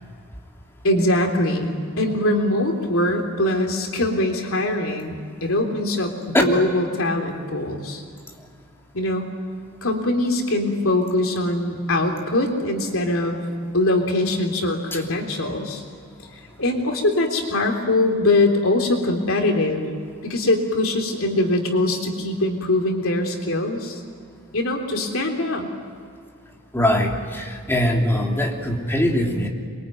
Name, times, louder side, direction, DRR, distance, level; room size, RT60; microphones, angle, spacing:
voice 1, 0.8-8.0 8.9-9.3 9.8-13.4 13.7-15.8 16.6-19.8 20.2-24.0 24.5-25.7, left 1 dB, 70° left, 3 dB, 3.5 m, -22 dB
voice 2, 26.7-29.5, equal, 10° left, 0 dB, 3.2 m, -22 dB
27.5 x 23.0 x 9.2 m, 2.3 s
head